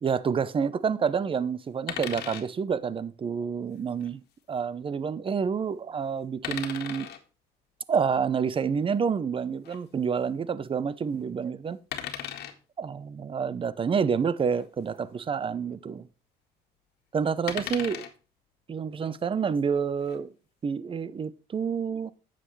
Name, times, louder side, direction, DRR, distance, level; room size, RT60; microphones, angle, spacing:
voice 1, 0.0-4.2 4.5-7.1 7.9-11.8 12.8-16.1 17.1-18.0 18.7-20.3 20.6-22.1, right 6 dB, 30° right, 0.8 m, -28 dB
sound 1, 1.9-2.4 3.9-4.1 6.4-7.2 9.6-9.8 11.9-12.6 14.5-14.7 15.0-15.1 17.5-18.1 19.8-20.2, left 10 dB, 75° left, 1.7 m, -36 dB
9.9 x 7.7 x 3.2 m
cardioid pair, 110°, 17 cm